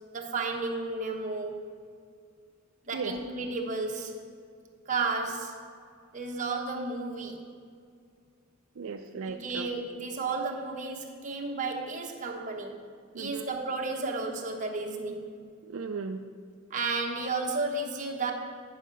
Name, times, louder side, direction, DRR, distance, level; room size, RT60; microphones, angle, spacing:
voice 1, 0.1-1.7 2.9-4.2 4.9-5.6 6.1-7.4 9.2-12.9 13.1-15.3 16.7-18.3, right 3 dB, 35° right, 1 dB, 1.0 m, -33 dB
voice 2, 8.8-9.7 13.1-13.5 15.7-16.2, right 5 dB, 65° right, 5 dB, 0.4 m, -36 dB
10.0 x 6.4 x 5.2 m, 2.3 s
head